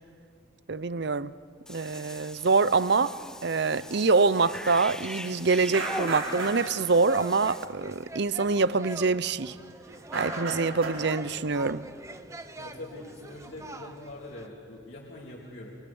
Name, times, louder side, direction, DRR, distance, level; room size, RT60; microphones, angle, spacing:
voice 1, 0.7-1.3 1.7-3.2 3.4-9.5 10.1-11.9, right 4 dB, 55° right, 0.6 m, -25 dB
Cat / Bathtub (filling or washing), 1.7-7.7, left 1 dB, 5° left, 0.6 m, -41 dB
sound 1, 4.3-14.5, right 2 dB, 15° right, 0.9 m, -44 dB
sound 2, 5.7-6.7 7.8-7.9 8.8-9.0 9.3-9.6 9.9-11.1, right 3 dB, 90° right, 4.7 m, -33 dB
voice 2, 12.6-15.8, left 2 dB, 55° left, 3.0 m, -43 dB
29.0 x 26.0 x 7.1 m
head